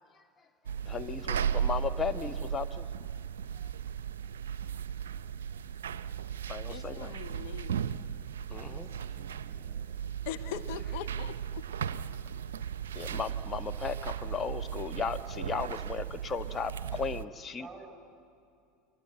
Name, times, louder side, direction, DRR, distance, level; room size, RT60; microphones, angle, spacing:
sound 1, 0.6-17.2, right 8 dB, 75° right, 0.6 m, -36 dB
voice 1, 0.9-2.9 6.5-7.2 8.5-8.9 12.9-17.7, left 5 dB, 25° left, 10 dB, 1.3 m, -36 dB
voice 2, 6.7-7.9 10.2-11.6, left 11 dB, 60° left, 9 dB, 1.2 m, -41 dB
voice 3, 8.5-9.9 17.6-17.9, right 4 dB, 10° right, 3 dB, 7.3 m, -52 dB
29.5 x 23.5 x 8.1 m, 2.5 s
figure-of-eight pair, 75°, 0 cm